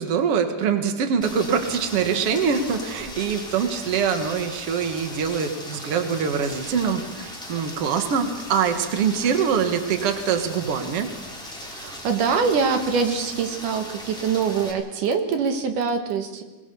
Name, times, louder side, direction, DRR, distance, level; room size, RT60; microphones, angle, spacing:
voice 1, 0.0-11.1, right 6 dB, 50° right, 6 dB, 2.4 m, -24 dB
Rain, 1.2-14.7, left 1 dB, ahead, 3.9 m, -38 dB
voice 2, 11.7-16.4, right 5 dB, 80° right, 5 dB, 3.2 m, -24 dB
22.0 x 21.5 x 7.0 m, 1.2 s
omnidirectional pair, 3.6 m